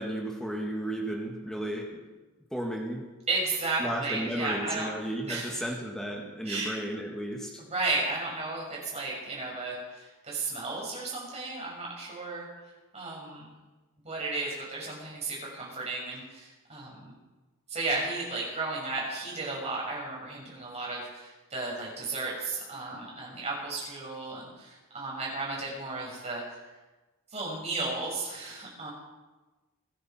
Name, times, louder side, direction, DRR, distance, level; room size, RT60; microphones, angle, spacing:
voice 1, 0.0-2.0 2.5-3.1 3.8-7.6, right 1 dB, 5° left, -1 dB, 2.1 m, -34 dB
voice 2, 3.3-4.9 5.3-5.6 6.4-6.7 7.7-12.5 12.9-13.5 14.0-17.2 17.7-26.4 27.3-28.9, right 3 dB, 30° right, -4 dB, 6.0 m, -34 dB
23.5 x 9.9 x 4.5 m, 1.2 s
head